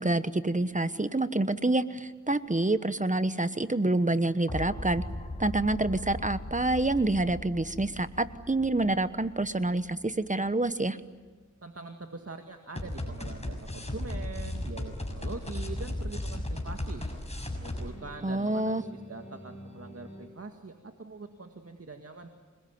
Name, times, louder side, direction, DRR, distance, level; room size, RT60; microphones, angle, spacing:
voice 1, 0.0-5.0 5.4-11.0 18.2-18.8, right 2 dB, 25° right, 12 dB, 1.2 m, -27 dB
sound 1, 2.5-2.8 4.5-10.3 12.8-20.3, left 1 dB, 20° left, 6.4 m, -38 dB
voice 2, 11.6-17.0 17.5-22.3, right 3 dB, 55° right, 5 dB, 2.0 m, -43 dB
27.5 x 21.5 x 9.5 m, 1.4 s
cardioid pair, 45°, 29 cm